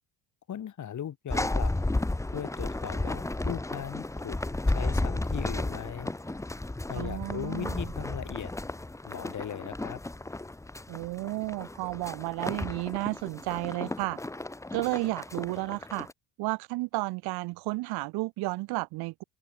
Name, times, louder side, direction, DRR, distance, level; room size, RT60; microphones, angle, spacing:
voice 1, 0.5-1.7 2.3-4.4 4.7-6.1 6.9-8.5 9.0-10.0, left 9 dB, 45° left, 7.6 m, -38 dB
sound 1, 1.3-16.1, left 2 dB, 5° left, 1.4 m, -33 dB
voice 2, 6.9-7.9 10.9-14.2 14.7-16.1 16.4-19.2, right 21 dB, 75° right, 1.5 m, -32 dB
open air
supercardioid pair, 100°, 39 cm